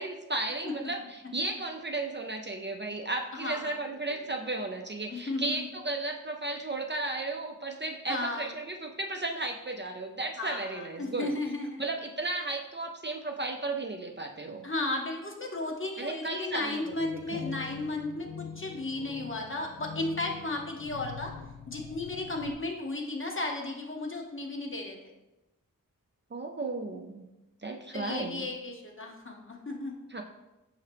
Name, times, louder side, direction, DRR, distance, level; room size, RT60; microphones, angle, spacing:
voice 1, 0.0-11.3 11.8-14.6 16.0-16.8 17.1-17.5 26.3-27.2 27.6-28.5 30.1-30.2, right 2 dB, 35° right, 2 dB, 0.4 m, -34 dB
voice 2, 3.3-3.8 4.1-4.2 5.1-5.6 8.1-8.5 10.4-11.8 14.6-21.3 21.7-25.0 27.9-29.9, left 2 dB, 35° left, 1 dB, 0.9 m, -34 dB
sound 1, 16.9-22.5, left 7 dB, 75° left, 0.5 m, -44 dB
5.5 x 2.8 x 3.3 m, 0.99 s
cardioid pair, 45°, 35 cm